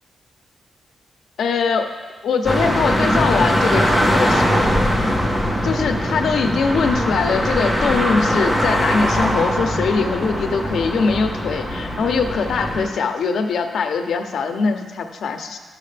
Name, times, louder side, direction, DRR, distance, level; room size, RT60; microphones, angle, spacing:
voice 1, 1.4-1.9 2.2-4.7 5.6-15.6, left 5 dB, 70° left, 5 dB, 0.7 m, -22 dB
sound 1, 2.4-12.9, equal, 10° right, 1.0 m, -21 dB
13.0 x 6.3 x 3.3 m, 1.5 s
wide cardioid pair, 175°, 0 cm